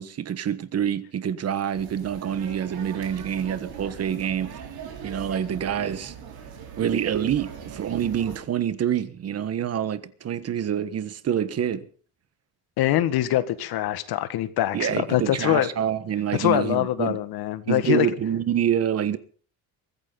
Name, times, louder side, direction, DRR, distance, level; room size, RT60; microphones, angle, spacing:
voice 1, 0.0-4.6 5.0-6.1 6.8-11.9 14.7-17.2 17.7-19.2, right 9 dB, 40° right, 1.4 m, -26 dB
sound 1, 1.7-8.4, right 7 dB, 75° right, 5.3 m, -40 dB
voice 2, 12.8-15.7 16.4-18.1, left 13 dB, 80° left, 1.8 m, -24 dB
23.0 x 15.0 x 4.0 m
cardioid pair, 150°, 37 cm